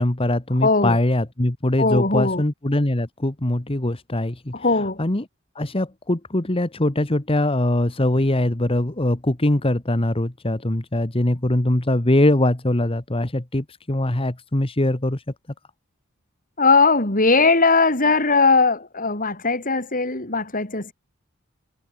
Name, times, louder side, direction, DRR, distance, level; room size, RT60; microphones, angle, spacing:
voice 1, 0.0-5.2 5.5-15.2, left 1 dB, 30° left, 1.4 m, -22 dB
voice 2, 0.6-1.0 1.8-2.4 4.5-5.0 16.6-20.9, left 3 dB, 45° left, 4.8 m, -19 dB
head